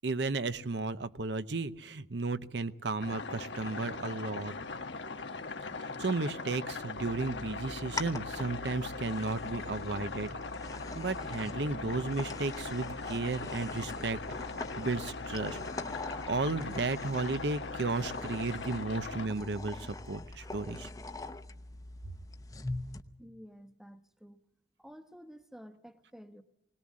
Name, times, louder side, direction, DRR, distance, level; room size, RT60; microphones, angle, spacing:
voice 1, 0.0-4.5 5.8-10.3 10.9-14.2 14.8-15.6 16.3-20.9, right 3 dB, 70° right, 12 dB, 0.8 m, -34 dB
sound 1, 3.0-19.3, left 3 dB, 90° left, 1.2 m, -40 dB
sound 2, 7.0-23.0, left 2 dB, 20° left, 0.8 m, -43 dB
voice 2, 23.2-24.4 24.8-26.4, equal, 5° right, 9 dB, 1.0 m, -51 dB
21.0 x 19.0 x 7.4 m, 0.96 s
head